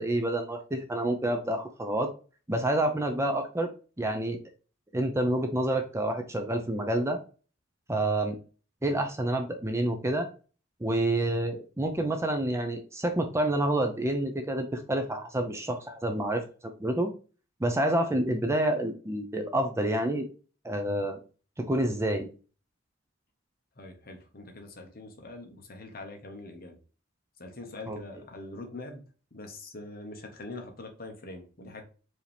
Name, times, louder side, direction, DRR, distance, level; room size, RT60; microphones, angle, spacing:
voice 1, 0.0-2.1 2.5-3.7 4.0-4.4 4.9-7.2 7.9-8.4 8.8-10.3 10.8-16.4 16.8-17.1 17.6-20.3 20.6-21.2 21.6-22.3 27.9-28.0, right 1 dB, 15° right, 0.5 m, -28 dB
voice 2, 23.8-26.8 27.4-29.0 29.3-31.8, left 2 dB, 50° left, 1.1 m, -43 dB
4.8 x 2.9 x 3.3 m
head